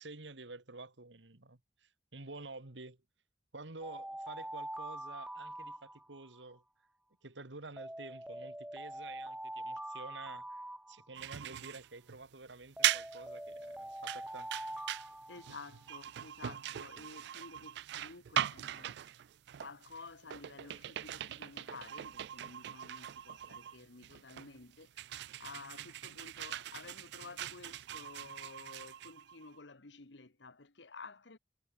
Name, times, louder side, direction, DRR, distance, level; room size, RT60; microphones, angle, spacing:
voice 1, 0.0-3.0 3.5-6.6 7.2-10.6 10.9-14.5, right 3 dB, 85° right, 2.1 m, -50 dB
Alarm, 3.8-6.4 7.8-11.4 12.8-16.0, right 1 dB, 5° right, 1.4 m, -44 dB
sound 1, 11.2-29.6, right 12 dB, 65° right, 0.4 m, -40 dB
voice 2, 15.3-19.1 19.6-31.4, left 3 dB, 85° left, 1.5 m, -52 dB
head